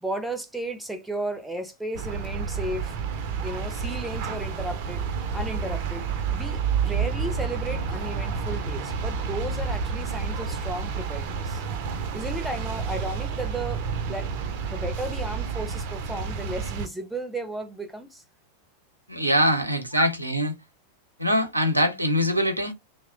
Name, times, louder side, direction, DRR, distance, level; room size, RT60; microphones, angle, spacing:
voice 1, 0.0-3.0 3.4-5.1 5.3-11.6 12.1-14.3 14.7-18.2 20.0-20.1, right 1 dB, 5° right, 0.6 m, -34 dB
sound 1, 1.9-16.9, right 6 dB, 45° right, 0.5 m, -30 dB
voice 2, 19.1-20.5 21.2-22.7, equal, 85° right, 0.7 m, -23 dB
2.9 x 2.1 x 3.7 m
figure-of-eight pair, 90°, 0 cm